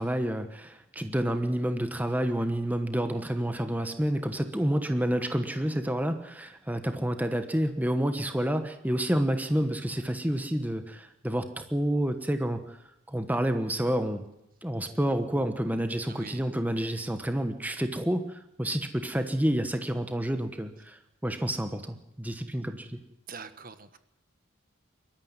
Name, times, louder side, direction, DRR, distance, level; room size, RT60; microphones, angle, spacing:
voice 1, 0.0-12.8 13.1-14.2 14.6-23.0, right 1 dB, 10° right, 8 dB, 1.2 m, -29 dB
voice 2, 16.1-16.4 23.3-24.0, right 5 dB, 40° right, 11 dB, 1.3 m, -43 dB
23.0 x 13.5 x 9.7 m, 0.87 s
head